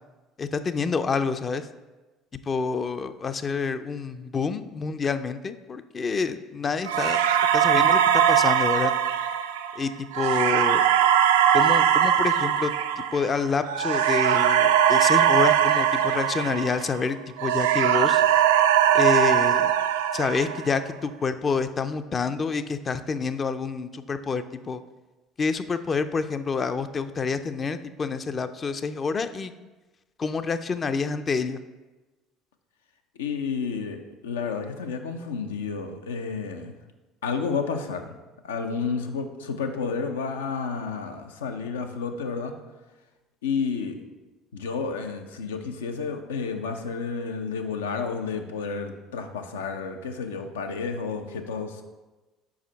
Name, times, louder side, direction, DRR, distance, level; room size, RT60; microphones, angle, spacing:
voice 1, 0.4-1.7 2.5-7.2 7.5-8.9 9.8-10.8 11.5-18.2 18.9-19.7 20.1-24.8 25.4-29.5 30.2-31.6, left 5 dB, 35° left, 10 dB, 0.4 m, -28 dB
sound 1, 6.9-17.1 17.4-20.8, right 9 dB, 85° right, 0.3 m, -21 dB
voice 2, 33.2-36.7 37.2-38.2 38.4-42.5 43.4-43.9 44.5-51.8, left 5 dB, 90° left, 6 dB, 0.5 m, -31 dB
5.0 x 4.8 x 4.5 m, 1.2 s
hypercardioid pair, 70°, 0 cm